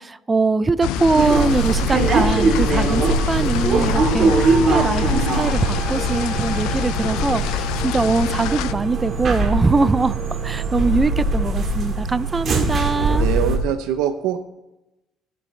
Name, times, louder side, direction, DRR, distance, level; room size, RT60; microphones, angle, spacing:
voice 1, 0.0-10.2 10.4-13.3, right 3 dB, 15° right, 0.3 m, -22 dB
sound 1, 0.8-8.7, left 12 dB, 85° left, 0.3 m, -26 dB
sound 2, 1.1-13.6, right 3 dB, 40° right, 1.8 m, -21 dB
voice 2, 13.2-14.4, right 10 dB, 90° right, 0.7 m, -23 dB
16.5 x 6.8 x 3.2 m
cardioid pair, 135°, 0 cm